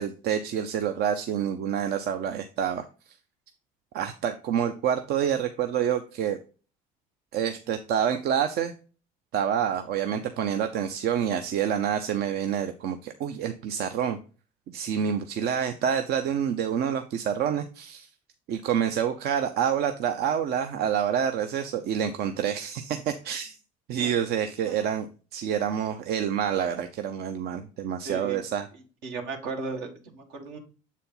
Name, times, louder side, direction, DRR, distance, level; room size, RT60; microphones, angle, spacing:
voice 1, 0.0-2.9 3.9-6.4 7.3-8.7 9.3-14.2 14.7-18.1 18.5-23.6 23.9-25.1 25.3-28.7, right 8 dB, 65° right, 8 dB, 0.6 m, -27 dB
voice 2, 28.0-28.4 29.0-30.6, right 3 dB, 80° right, 3 dB, 1.6 m, -36 dB
7.1 x 4.2 x 3.8 m, 0.37 s
supercardioid pair, 80°, 18 cm